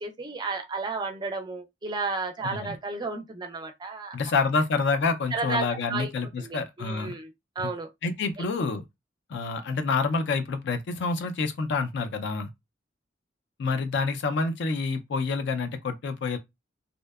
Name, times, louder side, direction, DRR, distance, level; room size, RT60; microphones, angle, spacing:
voice 1, 0.0-4.2 5.3-6.1 6.4-7.9 8.4-8.5, right 3 dB, 25° right, 0.4 m, -33 dB
voice 2, 4.1-7.1 8.0-8.8 9.3-12.5 13.6-16.4, left 4 dB, 65° left, 0.4 m, -27 dB
2.6 x 2.1 x 2.2 m
head